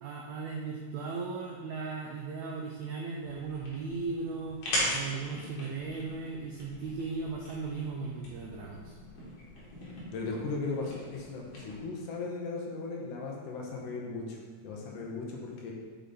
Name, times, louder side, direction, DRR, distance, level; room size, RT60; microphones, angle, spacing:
voice 1, 0.0-4.6 4.9-8.9, right 4 dB, 85° right, -1 dB, 1.6 m, -37 dB
sound 1, 3.2-11.8, equal, 55° left, 2.3 m, -40 dB
voice 2, 10.1-14.4 14.6-15.7, left 3 dB, 75° left, -1 dB, 2.3 m, -37 dB
6.7 x 4.9 x 3.9 m, 1.5 s
omnidirectional pair, 3.9 m